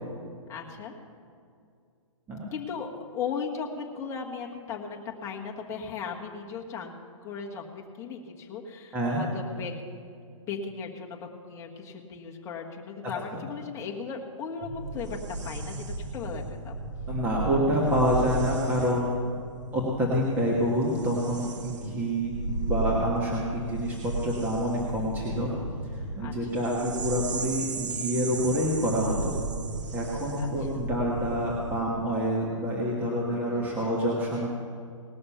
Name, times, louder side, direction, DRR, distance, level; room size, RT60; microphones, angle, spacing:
voice 1, 0.5-0.9 2.5-6.9 7.2-7.6 8.0-9.7 10.4-15.2 15.4-16.8 26.2-26.6 30.4-30.5 33.2-34.1, left 6 dB, 15° left, -1 dB, 1.4 m, -37 dB
sound 1, 14.6-32.2, right 3 dB, 60° right, 1.2 m, -35 dB
voice 2, 17.1-19.1 19.7-25.5 25.9-29.3 29.9-34.5, equal, 10° right, -4 dB, 1.4 m, -27 dB
19.0 x 6.5 x 5.7 m, 2.3 s
hypercardioid pair, 150°, 17 cm